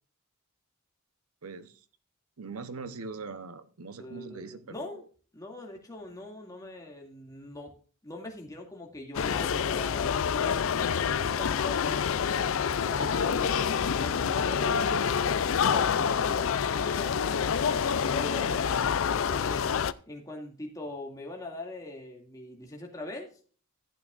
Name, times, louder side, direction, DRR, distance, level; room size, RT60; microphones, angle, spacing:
voice 1, 1.4-1.8 2.4-5.0, right 4 dB, 85° right, 0.9 m, -42 dB
voice 2, 4.0-5.0 5.3-7.7 8.0-12.1 12.7-17.4 17.8-19.7 20.1-23.5, left 2 dB, 15° left, 2.3 m, -42 dB
sound 1, 9.1-19.9, left 7 dB, 65° left, 0.4 m, -27 dB
14.5 x 8.8 x 2.5 m
head